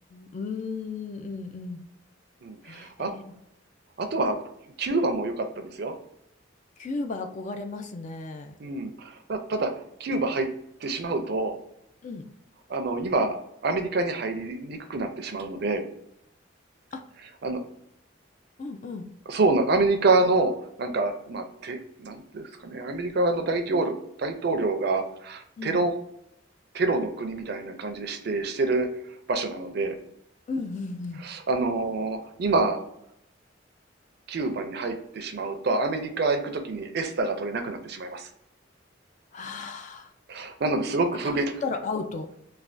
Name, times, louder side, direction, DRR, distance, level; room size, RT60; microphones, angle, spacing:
voice 1, 0.1-1.8 2.6-3.3 6.8-8.6 12.0-12.3 16.9-17.0 18.6-19.0 25.6-25.8 30.5-31.3 39.3-40.1 41.3-42.3, left 4 dB, 40° left, 6 dB, 0.4 m, -34 dB
voice 2, 2.4-3.1 4.0-4.4 4.8-5.9 8.6-9.7 10.0-10.5 10.8-11.6 12.7-13.4 13.6-15.8 17.4-17.6 19.3-20.5 20.8-23.9 24.2-25.9 26.7-28.9 29.3-29.9 31.2-32.8 34.3-38.3 40.3-41.5, right 3 dB, 60° right, 6 dB, 0.5 m, -27 dB
3.3 x 2.2 x 2.5 m, 0.76 s
head